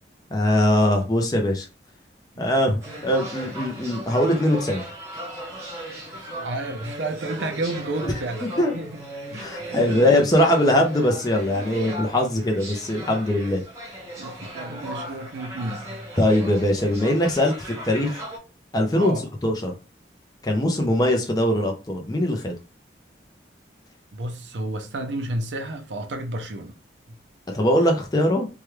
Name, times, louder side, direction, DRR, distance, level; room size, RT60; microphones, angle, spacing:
voice 1, 0.3-1.7 2.4-4.8 8.0-8.1 8.6-8.8 9.4-13.6 16.2-18.2 18.7-19.1 19.4-19.7 20.4-22.5 27.5-28.5, left 1 dB, 20° left, 0.5 m, -21 dB
sound 1, 2.8-18.4, right 1 dB, 15° right, 1.0 m, -37 dB
voice 2, 6.1-9.0 9.3-10.1 14.2-16.1 18.9-19.2 24.1-26.7, right 1 dB, 85° right, 0.6 m, -31 dB
3.1 x 2.3 x 3.2 m
head